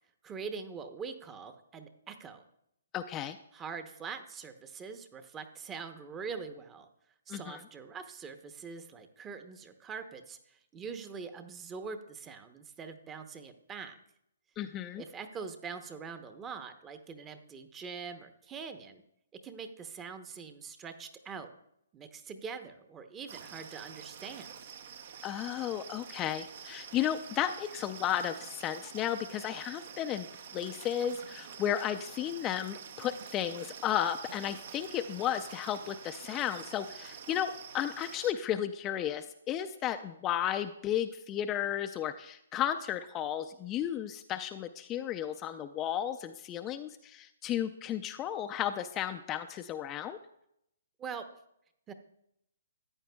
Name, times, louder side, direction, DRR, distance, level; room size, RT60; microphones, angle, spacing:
voice 1, 0.2-2.4 3.5-6.9 7.3-14.0 15.0-19.0 19.4-21.5 21.9-24.7 51.0-51.2 51.9-52.0, right 5 dB, 15° right, 8 dB, 0.8 m, -43 dB
voice 2, 2.9-3.4 7.3-7.6 14.6-15.0 25.2-30.3 30.5-50.2, left 10 dB, 25° left, 7 dB, 0.4 m, -34 dB
sound 1, 23.3-38.3, right 7 dB, 55° right, 0.7 m, -47 dB
14.0 x 9.1 x 2.3 m, 0.77 s
hypercardioid pair, 135°, 0 cm